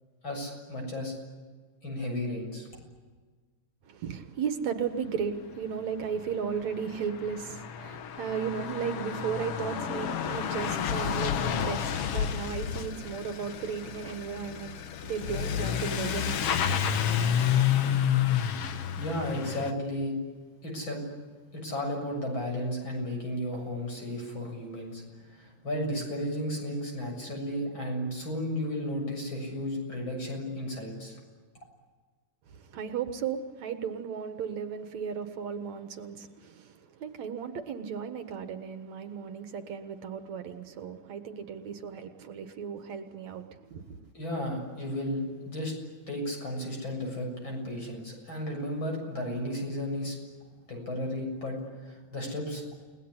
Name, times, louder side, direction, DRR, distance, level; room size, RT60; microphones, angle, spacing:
voice 1, 0.2-1.1 1.8-2.7 19.0-20.1 20.6-21.0 21.5-25.0 25.3-31.2 44.1-45.7 46.1-50.2 50.7-51.6 51.8-52.6, left 1 dB, 40° left, 2 dB, 8.0 m, -33 dB
voice 2, 3.8-16.4 32.5-44.1, right 7 dB, 70° right, 8 dB, 2.7 m, -35 dB
Truck / Accelerating revving vroom, 6.0-6.1 6.3-19.7, left 9 dB, 60° left, 1.9 m, -30 dB
30.0 x 19.5 x 10.0 m, 1.4 s
omnidirectional pair, 3.3 m